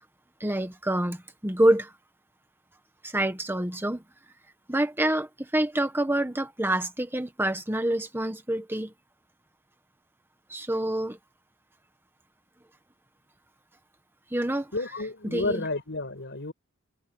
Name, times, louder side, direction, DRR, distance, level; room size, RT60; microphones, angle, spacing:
voice 1, 0.4-1.9 3.0-4.0 4.7-8.9 10.5-11.2 14.3-14.7 15.2-15.7, right 1 dB, 10° right, 1.4 m, -27 dB
voice 2, 14.7-16.5, left 2 dB, 60° left, 5.0 m, -31 dB
head